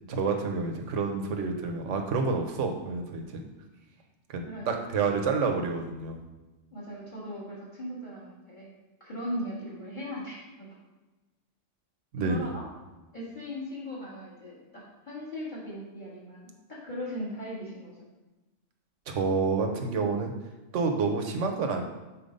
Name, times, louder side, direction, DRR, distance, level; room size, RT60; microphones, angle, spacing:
voice 1, 0.1-3.5 4.3-6.2 12.1-12.5 19.1-20.3 20.7-21.8, right 4 dB, 75° right, 4 dB, 1.2 m, -29 dB
voice 2, 6.7-8.7 9.0-10.8 12.2-12.6 13.1-18.0, equal, 40° left, -6 dB, 2.1 m, -38 dB
7.3 x 4.3 x 5.2 m, 1.1 s
omnidirectional pair, 1.3 m